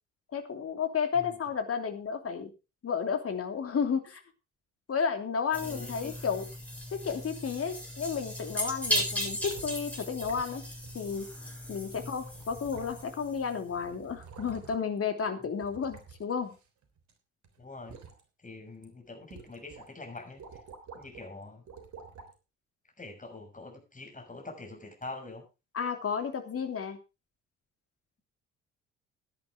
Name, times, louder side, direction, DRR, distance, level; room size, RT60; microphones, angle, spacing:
voice 1, 0.3-2.5 2.8-4.2 4.9-6.4 6.9-10.6 10.9-11.3 11.7-16.5 25.7-27.0, left 6 dB, 40° left, 5 dB, 2.9 m, -32 dB
sound 1, 5.5-13.6, equal, 5° left, 6.9 m, -37 dB
voice 2, 5.6-6.1 11.9-12.3 17.6-18.0 18.4-20.6 20.9-21.6 23.0-25.4, left 3 dB, 20° left, 3 dB, 6.5 m, -45 dB
sound 2, 8.9-9.8 10.2-10.6 10.8-11.0 11.9-12.0 12.3-13.2 13.5-15.0 15.6-17.1 17.4-18.2 18.7-18.8 19.3-19.9 20.2-21.3 21.7-22.3 23.0-23.1, right 5 dB, 50° right, 3.5 m, -49 dB
16.5 x 10.5 x 3.7 m, 0.29 s
figure-of-eight pair, 45°, 36 cm